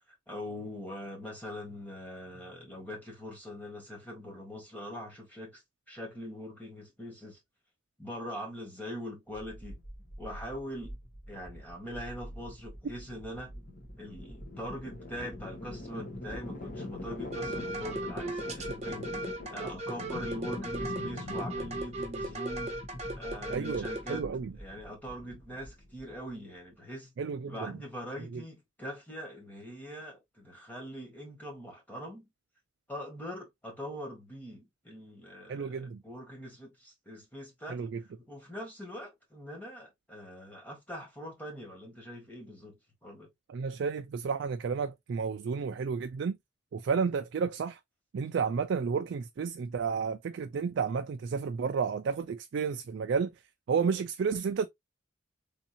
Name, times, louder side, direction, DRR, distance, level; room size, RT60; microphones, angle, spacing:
voice 1, 0.3-5.6 5.9-7.4 8.0-9.8 10.2-11.0 11.3-13.6 14.0-19.1 19.5-22.8 23.1-24.3 24.6-27.1 27.4-32.3 32.9-37.9 38.3-43.3, equal, 10° left, 1.4 m, -42 dB
sound 1, 9.4-26.3, left 1 dB, 40° left, 1.2 m, -43 dB
sound 2, 17.3-24.2, right 1 dB, 35° right, 0.8 m, -37 dB
voice 2, 23.5-24.5 27.2-27.7 28.3-28.4 35.5-36.0 37.7-38.0 43.5-46.4 46.7-47.8 48.1-53.3 53.7-54.7, right 5 dB, 60° right, 0.3 m, -31 dB
3.5 x 2.7 x 2.7 m
head